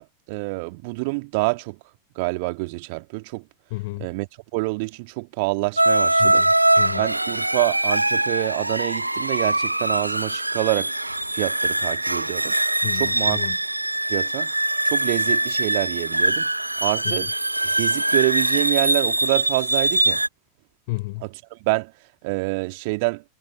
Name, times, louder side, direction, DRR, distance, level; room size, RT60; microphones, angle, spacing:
voice 1, 0.0-1.8 2.2-3.4 4.0-4.3 4.5-6.4 6.9-10.9 11.3-12.5 13.0-13.4 14.1-14.5 14.8-16.5 16.8-17.3 17.6-20.2 21.2-21.9 22.2-23.2, right 28 dB, 45° right, 2.2 m, -26 dB
voice 2, 3.7-4.1 6.2-7.0 12.8-13.6 17.0-17.1 20.9-21.2, left 23 dB, 50° left, 4.7 m, -32 dB
sound 1, 5.8-20.3, right 1 dB, 85° right, 1.5 m, -22 dB
figure-of-eight pair, 90°, 0 cm